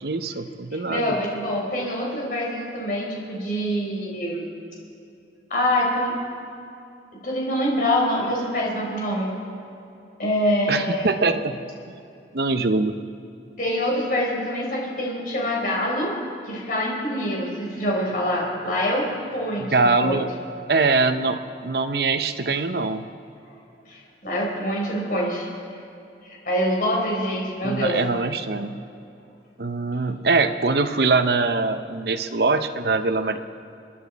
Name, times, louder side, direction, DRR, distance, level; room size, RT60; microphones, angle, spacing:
voice 1, 0.0-1.2 10.7-11.6 12.3-12.9 19.7-20.3 20.7-23.1 27.6-28.7 29.6-33.4, right 3 dB, 60° right, 9 dB, 0.7 m, -23 dB
voice 2, 0.7-4.5 5.5-6.2 7.2-9.3 10.2-11.1 13.6-16.1 16.5-19.0 19.3-19.7 20.0-20.2 23.9-25.5 26.2-28.0, equal, 50° left, -3 dB, 4.1 m, -25 dB
29.5 x 10.0 x 4.1 m, 2.7 s
head